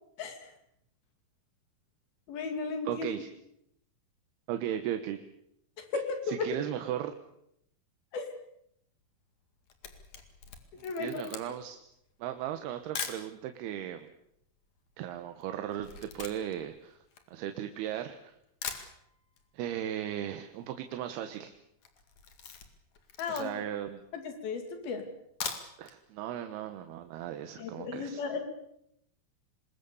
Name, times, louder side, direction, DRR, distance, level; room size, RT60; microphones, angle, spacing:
voice 1, 0.2-0.5 2.3-3.1 5.8-5.9 6.3-6.5 8.1-8.3 10.8-11.3 23.2-23.6 24.1-25.0 27.6-28.4, left 4 dB, 70° left, 5 dB, 4.4 m, -35 dB
voice 2, 2.9-3.3 4.5-5.2 6.3-7.1 10.8-11.8 12.2-14.1 15.0-17.0 17.3-18.4 19.5-21.5 23.3-24.0 25.8-28.2, right 11 dB, 80° right, 7 dB, 3.1 m, -36 dB
Camera, 9.4-13.3 14.0-14.1 14.3-17.9 18.3-18.4 18.6-19.5 19.7-19.8 20.1-20.2 20.4-20.8 21.2-21.4 21.8-23.8 24.3-24.4 25.2-26.0 26.3-26.4 26.8-26.9, left 6 dB, 50° left, 3.1 m, -42 dB
25.5 x 21.0 x 7.0 m, 0.75 s
omnidirectional pair, 4.5 m